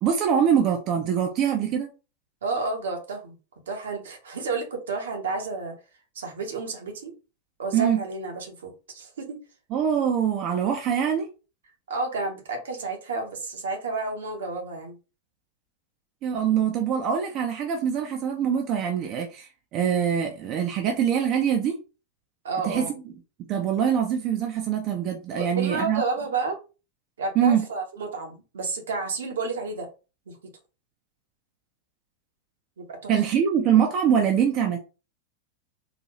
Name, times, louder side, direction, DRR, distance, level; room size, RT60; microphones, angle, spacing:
voice 1, 0.0-1.9 7.7-8.0 9.7-11.3 16.2-21.8 22.6-23.0 23.5-26.0 27.4-27.7 33.1-34.8, right 8 dB, 35° right, 0.6 m, -24 dB
voice 2, 2.4-3.4 3.7-5.7 6.1-7.1 7.6-9.4 11.9-15.0 22.4-22.9 25.4-26.6 27.2-29.9 30.3-30.4 32.8-33.1, right 4 dB, 65° right, 1.0 m, -31 dB
4.0 x 2.7 x 3.0 m
figure-of-eight pair, 90°, 0 cm